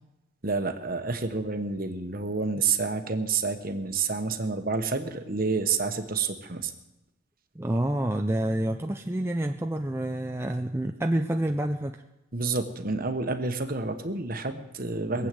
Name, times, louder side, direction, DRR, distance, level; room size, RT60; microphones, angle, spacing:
voice 1, 0.4-6.7 12.3-15.3, right 4 dB, 45° right, 7 dB, 1.2 m, -29 dB
voice 2, 7.6-12.0 15.2-15.3, right 1 dB, 10° right, 4 dB, 0.5 m, -28 dB
21.0 x 8.2 x 7.7 m, 0.96 s
head